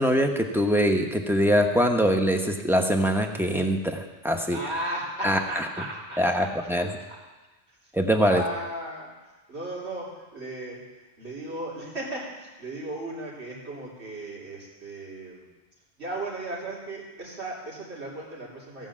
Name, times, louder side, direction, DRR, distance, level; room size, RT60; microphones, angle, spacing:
voice 1, 0.0-4.6 5.2-5.4 6.2-6.9 7.9-8.4, equal, ahead, 3 dB, 0.9 m, -23 dB
voice 2, 4.5-6.5 7.7-7.9 8.2-15.5 16.0-18.9, right 1 dB, 90° right, -6 dB, 3.8 m, -36 dB
16.0 x 5.4 x 7.4 m, 1.2 s
omnidirectional pair, 1.1 m